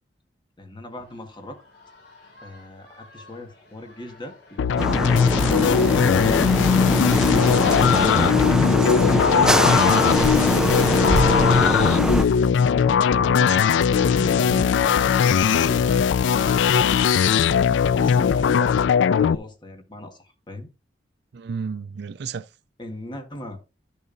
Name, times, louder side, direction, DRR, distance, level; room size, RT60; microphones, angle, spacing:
voice 1, 0.6-1.6 2.4-7.6 12.8-13.4 13.9-14.5 18.0-18.7 19.2-20.7 22.8-23.6, left 1 dB, 25° left, 1.6 m, -38 dB
sound 1, 0.9-8.5, left 2 dB, 60° left, 3.6 m, -53 dB
sound 2, 4.6-19.4, left 7 dB, 85° left, 0.3 m, -19 dB
sound 3, 4.8-12.2, right 1 dB, 5° right, 0.4 m, -23 dB
voice 2, 13.2-14.2 14.5-14.7 21.3-22.5, right 5 dB, 65° right, 0.4 m, -33 dB
12.0 x 6.9 x 2.6 m
head